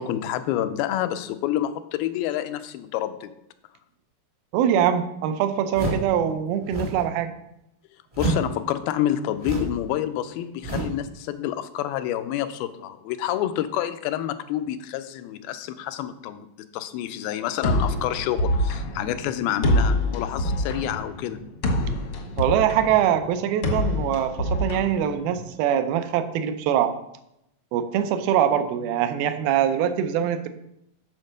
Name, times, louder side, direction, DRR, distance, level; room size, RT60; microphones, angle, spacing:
voice 1, 0.0-3.3 8.2-21.4, left 12 dB, 90° left, 10 dB, 2.4 m, -28 dB
voice 2, 4.5-7.3 22.4-27.0 27.7-30.5, right 9 dB, 85° right, 9 dB, 2.5 m, -23 dB
sound 1, 5.7-6.2 6.6-7.1 8.1-8.5 9.4-9.8 10.6-11.0, right 2 dB, 30° right, 0.6 m, -28 dB
sound 2, 17.6-25.6, left 1 dB, 70° left, 1.3 m, -26 dB
9.5 x 4.4 x 6.4 m, 0.82 s
omnidirectional pair, 4.2 m